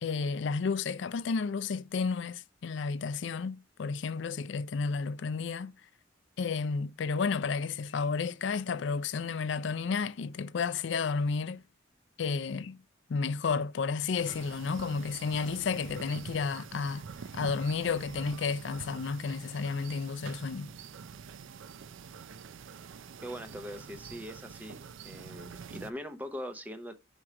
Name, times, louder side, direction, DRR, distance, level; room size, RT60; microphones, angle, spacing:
voice 1, 0.0-5.7 6.4-11.6 12.2-12.8 13.1-17.0 17.3-20.7, left 5 dB, 70° left, 0.4 m, -32 dB
sound 1, 14.2-25.9, right 6 dB, 80° right, 0.4 m, -46 dB
voice 2, 23.2-24.8 25.0-26.9, equal, 10° right, 0.6 m, -41 dB
6.2 x 4.5 x 3.7 m
head